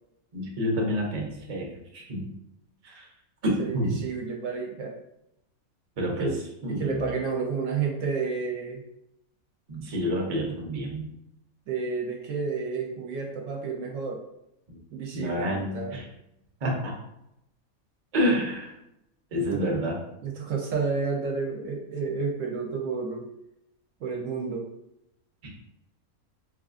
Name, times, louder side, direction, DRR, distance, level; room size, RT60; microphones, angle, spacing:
voice 1, 0.3-2.3 2.8-3.1 3.4-4.0 6.0-6.3 6.6-7.1 9.7-11.1 14.7-14.8 15.1-16.1 16.6-16.9 18.1-18.8 19.3-20.0 25.4-25.5, equal, 40° right, -1 dB, 0.6 m, -28 dB
voice 2, 3.6-4.9 6.2-6.4 6.7-8.8 11.7-14.2 14.9-15.9 19.4-19.5 20.2-23.3 24.0-24.7, right 5 dB, 70° right, -1 dB, 0.9 m, -30 dB
3.8 x 2.4 x 2.4 m, 0.83 s
omnidirectional pair, 1.5 m